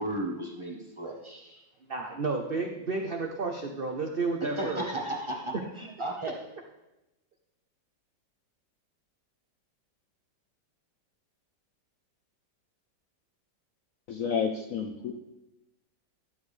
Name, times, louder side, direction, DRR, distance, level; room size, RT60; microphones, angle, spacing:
voice 1, 0.0-1.6 4.4-6.4, right 1 dB, 20° right, 0 dB, 0.9 m, -34 dB
voice 2, 1.9-4.9, right 3 dB, 75° right, 2 dB, 0.5 m, -31 dB
voice 3, 14.1-15.1, left 6 dB, 65° left, 4 dB, 0.8 m, -30 dB
12.5 x 7.3 x 3.3 m, 0.96 s
omnidirectional pair, 2.0 m